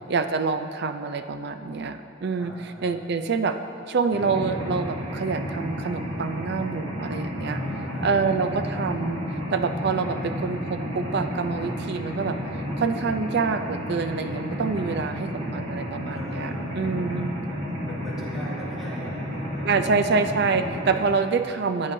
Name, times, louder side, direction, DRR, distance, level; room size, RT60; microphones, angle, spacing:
voice 1, 0.1-3.6 3.9-7.6 8.0-17.3 19.6-21.9, right 4 dB, 55° right, 9 dB, 0.4 m, -26 dB
voice 2, 2.3-2.9 7.4-8.3 11.6-11.7 16.1-19.8 20.8-21.3, equal, ahead, -9 dB, 2.3 m, -38 dB
Mechanisms, 4.1-21.0, equal, 70° right, 2.5 m, -32 dB
15.0 x 8.6 x 2.7 m, 2.8 s
head